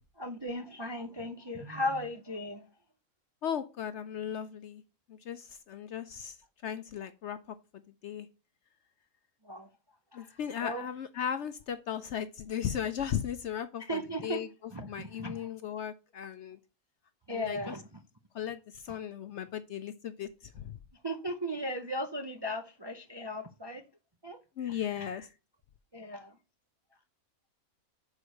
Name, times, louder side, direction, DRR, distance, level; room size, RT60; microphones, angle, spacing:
voice 1, 0.2-2.6 9.4-9.7 10.1-10.9 13.9-14.4 14.7-15.5 17.3-17.8 21.0-23.8 24.2-24.4 24.7-25.1 25.9-26.3, equal, 30° right, 0.4 m, -37 dB
voice 2, 3.4-4.8 5.1-6.4 6.6-8.3 10.1-16.6 17.3-17.7 18.3-20.8 24.6-25.3, left 9 dB, 60° left, 0.8 m, -37 dB
6.3 x 4.8 x 6.5 m
omnidirectional pair, 1.6 m